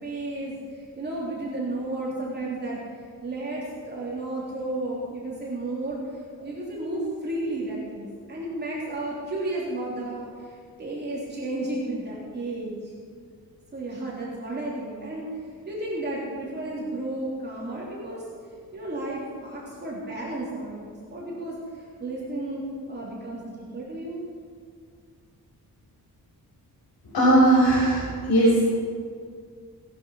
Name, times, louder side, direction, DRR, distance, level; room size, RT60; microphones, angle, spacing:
voice 1, 0.0-2.8 3.2-6.0 6.4-12.9 13.7-15.4 15.7-18.2 18.7-24.2, right 2 dB, 25° right, -6 dB, 3.4 m, -33 dB
voice 2, 27.1-28.7, right 1 dB, 75° left, -7 dB, 5.3 m, -19 dB
18.5 x 11.0 x 5.7 m, 2.1 s
wide cardioid pair, 170°, 37 cm